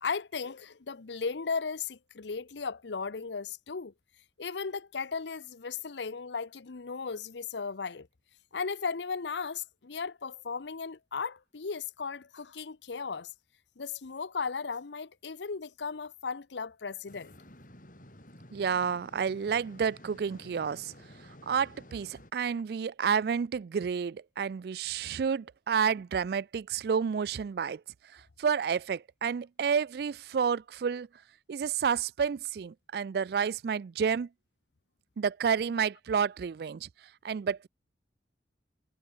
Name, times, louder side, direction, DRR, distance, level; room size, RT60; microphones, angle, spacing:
voice 1, 0.0-3.9 4.4-8.1 8.5-13.3 13.8-17.3, left 5 dB, 85° left, 0.8 m, -36 dB
sound 1, 17.1-22.3, left 1 dB, 50° left, 6.1 m, -52 dB
voice 2, 18.5-20.9 21.4-27.8 28.1-31.1 31.5-34.3 35.2-36.9 37.2-37.7, right 6 dB, 60° right, 0.3 m, -30 dB
head